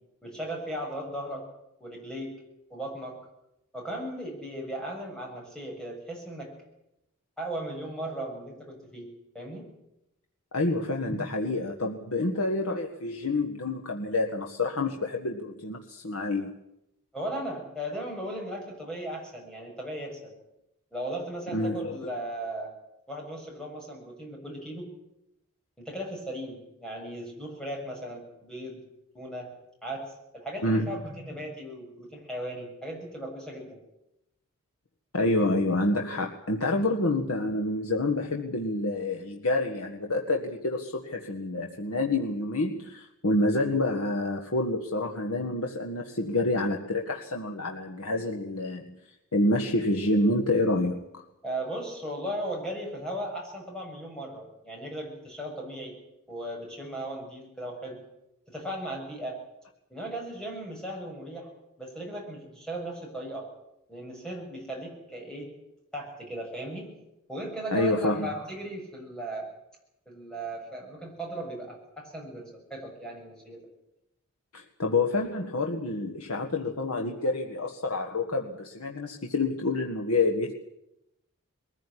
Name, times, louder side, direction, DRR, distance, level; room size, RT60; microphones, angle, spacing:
voice 1, 0.2-1.4 1.8-2.3 2.7-3.2 3.7-6.5 7.4-9.1 9.3-9.7 11.0-11.2 17.1-20.3 20.9-22.7 23.1-24.9 25.8-28.8 29.1-29.5 29.8-30.0 30.3-33.8 51.4-55.9 56.3-58.0 58.5-59.4 59.9-61.5 61.8-63.5 63.9-65.5 65.9-66.9 67.3-69.5 70.0-73.6, right 1 dB, 5° left, -1 dB, 6.9 m, -37 dB
voice 2, 10.5-16.5 21.5-22.1 30.6-31.0 35.1-49.0 49.3-51.2 67.7-68.3 74.5-80.5, left 2 dB, 80° left, 2 dB, 1.6 m, -28 dB
21.5 x 15.5 x 10.0 m, 0.87 s
head